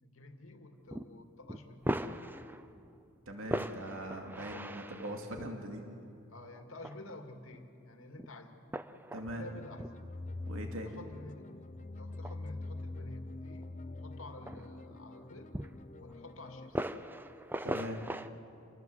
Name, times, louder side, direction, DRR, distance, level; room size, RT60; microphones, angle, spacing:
voice 1, 0.0-2.2 4.5-4.9 6.3-8.6 9.3-9.9 10.8-13.7 14.0-15.6 16.0-16.9, left 2 dB, 85° left, 5 dB, 2.2 m, -50 dB
sound 1, 0.9-1.1 1.5-2.8 3.4-5.5 6.6-7.2 7.5-7.6 8.2-8.3 8.7-9.4 9.8-10.1 11.0-11.1 12.0-12.3 13.1-13.2 13.6-13.7 14.2-15.3 15.5-16.1 16.7-18.3, right 1 dB, 10° right, 0.6 m, -39 dB
voice 2, 3.3-5.8 9.1-9.4 10.5-10.9 17.6-18.2, equal, 85° right, 2 dB, 2.5 m, -41 dB
sound 2, 9.4-16.7, left 2 dB, 35° left, 0.8 m, -45 dB
28.0 x 19.5 x 7.9 m, 2.6 s
head